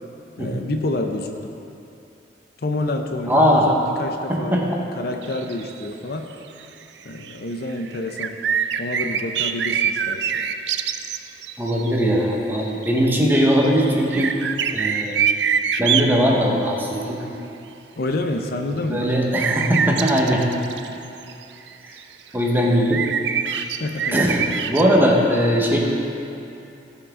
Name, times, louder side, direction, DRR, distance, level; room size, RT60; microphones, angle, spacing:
voice 1, 0.4-1.5 2.6-4.6 5.0-6.3 7.0-8.4 8.8-10.5 18.0-19.1 23.5-24.5, left 2 dB, 60° left, 4 dB, 0.6 m, -28 dB
voice 2, 3.3-3.7 4.3-4.6 11.6-14.3 14.7-15.2 15.8-17.2 18.9-20.4 22.3-23.0 23.5-23.6 24.1-24.4 24.7-25.8, equal, 10° right, -2 dB, 1.2 m, -19 dB
sound 1, 5.2-5.9 6.3-6.4 6.6-6.7 7.1-7.4 7.7-11.9 12.8-13.1 13.4-16.2 19.3-22.0 22.3-22.4 22.7-25.0, right 7 dB, 75° right, 0.4 m, -24 dB
17.5 x 5.9 x 3.7 m, 2.8 s
head